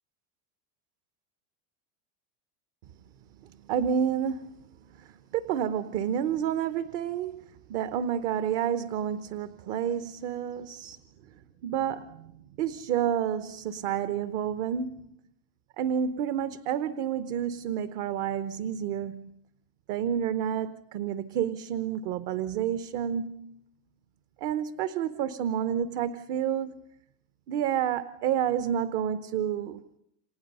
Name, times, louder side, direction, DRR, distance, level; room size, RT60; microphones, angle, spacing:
voice 1, 3.7-4.5 4.9-7.4 7.7-11.0 11.6-15.1 15.8-19.4 19.9-23.6 24.4-26.8 27.5-29.8, right 9 dB, 50° right, 1.1 m, -30 dB
29.0 x 26.0 x 5.5 m
cardioid pair, 175°, 47 cm